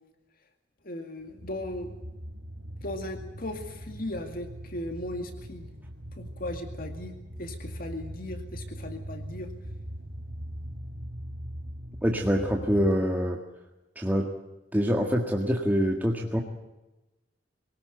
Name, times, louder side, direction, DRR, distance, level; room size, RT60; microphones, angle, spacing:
voice 1, 0.8-2.0 2.8-5.7 6.2-9.5, left 1 dB, 55° left, 6 dB, 2.2 m, -37 dB
sound 1, 1.3-12.9, equal, 60° right, 2.1 m, -41 dB
voice 2, 12.0-13.4 14.0-14.3 14.7-16.4, equal, 10° right, 1 dB, 1.8 m, -25 dB
24.5 x 18.5 x 8.1 m, 1.0 s
head